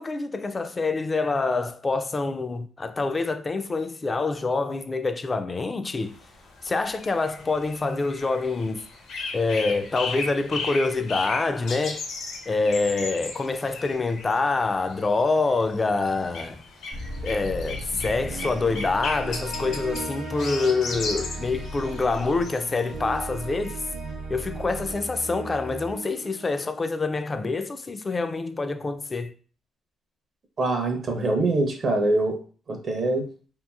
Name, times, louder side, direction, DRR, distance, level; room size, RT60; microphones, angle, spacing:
voice 1, 0.0-6.1 6.6-8.8 9.3-12.0 12.5-16.6 17.2-23.8 24.3-29.3, left 3 dB, 30° left, 0.3 m, -26 dB
sound 1, 6.0-23.3, left 3 dB, 70° left, 0.7 m, -37 dB
sound 2, 16.9-27.1, right 1 dB, 85° right, 0.6 m, -36 dB
voice 2, 30.6-32.4 32.7-33.3, right 2 dB, 45° right, 0.6 m, -24 dB
2.9 x 2.5 x 2.3 m
cardioid pair, 90°, 0 cm